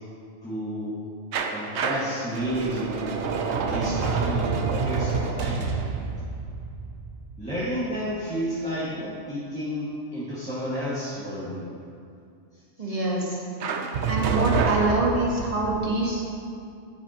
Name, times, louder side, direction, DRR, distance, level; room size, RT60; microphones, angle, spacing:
voice 1, 0.4-1.0 1.5-5.7 7.4-11.7 12.5-12.9, equal, 5° left, -11 dB, 1.8 m, -31 dB
sound 1, 1.3-8.1 13.6-15.8, right 5 dB, 70° right, 0.9 m, -28 dB
voice 2, 12.8-13.4 14.1-16.5, right 2 dB, 30° right, -4 dB, 1.4 m, -25 dB
11.0 x 8.5 x 2.9 m, 2.5 s
omnidirectional pair, 1.2 m